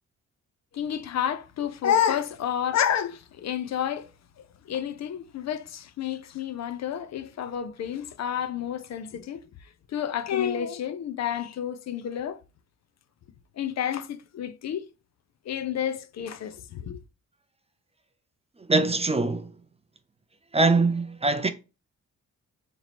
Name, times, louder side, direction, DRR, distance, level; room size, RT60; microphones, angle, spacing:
voice 1, 0.7-4.1 4.4-9.4 9.9-12.4 13.6-14.9 15.5-17.0, left 9 dB, 60° left, 0.4 m, -29 dB
voice 2, 18.7-19.5 20.5-21.5, right 3 dB, 20° right, 0.4 m, -22 dB
2.9 x 2.9 x 4.1 m
cardioid pair, 75°, 31 cm